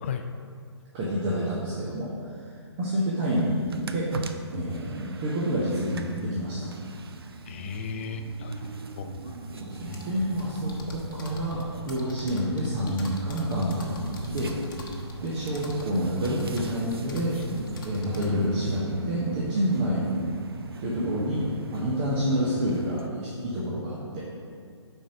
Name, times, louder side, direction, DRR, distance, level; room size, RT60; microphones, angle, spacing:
voice 1, 0.9-2.1 2.8-3.6 3.9-4.1 4.5-6.7 8.6-8.7 9.6-14.6 15.2-17.4 17.8-20.0 20.8-21.4 21.7-24.2, equal, 25° right, -6 dB, 1.0 m, -28 dB
sound 1, 3.2-23.1, right 3 dB, 55° right, 0.5 m, -38 dB
voice 2, 7.5-8.5 9.0-9.3 9.8-10.0, left 5 dB, 25° left, 7 dB, 0.4 m, -35 dB
sound 2, 9.8-18.3, left 2 dB, 45° left, 1.0 m, -42 dB
7.2 x 4.5 x 5.1 m, 2.2 s
figure-of-eight pair, 135°, 15 cm